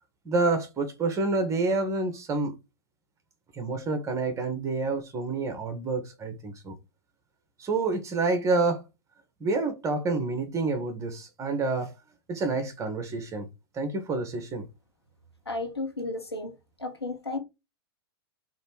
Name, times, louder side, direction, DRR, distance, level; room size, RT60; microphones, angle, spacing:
voice 1, 0.3-2.6 3.5-6.7 7.6-8.8 9.4-11.9 12.3-13.5 13.7-14.6, right 3 dB, 25° right, 1.8 m, -28 dB
voice 2, 15.5-16.5 16.8-17.4, left 2 dB, 90° left, 2.3 m, -33 dB
6.4 x 3.6 x 4.7 m
figure-of-eight pair, 95°, 13 cm